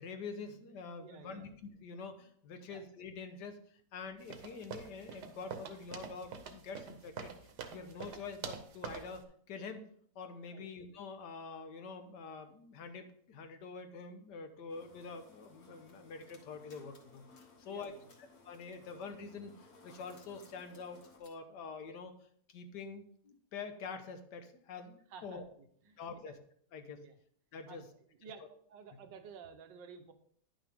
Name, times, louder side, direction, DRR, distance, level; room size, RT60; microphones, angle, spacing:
voice 1, 0.0-3.6 3.9-7.3 7.7-9.8 10.1-17.9 18.5-22.1 22.5-25.4 26.0-26.4 26.7-27.0 27.5-27.9, left 4 dB, 75° left, 8 dB, 1.5 m, -46 dB
voice 2, 1.0-1.5 2.7-2.8 10.5-10.6 17.7-18.1 25.1-25.4 25.9-26.3 27.0-27.2 27.7-27.9 28.2-28.4 28.7-30.1, right 6 dB, 85° right, 7 dB, 1.6 m, -52 dB
sound 1, 4.3-9.2, right 6 dB, 70° right, 1.4 m, -46 dB
sound 2, 14.7-21.2, left 3 dB, 60° left, 1.6 m, -61 dB
sound 3, 15.9-19.3 19.9-21.3, left 3 dB, 40° left, 1.7 m, -66 dB
10.0 x 5.9 x 3.5 m, 0.62 s
omnidirectional pair, 1.9 m